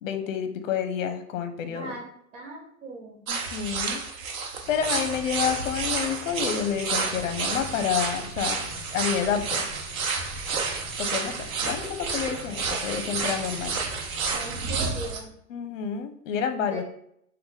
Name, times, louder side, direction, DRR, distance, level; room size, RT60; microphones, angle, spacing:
voice 1, 0.0-1.9 3.3-4.0 4.7-8.6 8.9-9.7 11.0-13.8 15.5-16.8, left 8 dB, 70° left, 8 dB, 0.7 m, -29 dB
voice 2, 1.7-2.0 2.3-3.3 14.3-15.3 16.7-16.8, right 3 dB, 70° right, 1 dB, 1.2 m, -39 dB
sound 1, 3.3-15.2, right 4 dB, 90° right, 1.0 m, -30 dB
sound 2, 4.6-14.8, left 1 dB, 10° right, 0.4 m, -45 dB
5.6 x 2.2 x 3.9 m, 0.71 s
supercardioid pair, 175°, 40 cm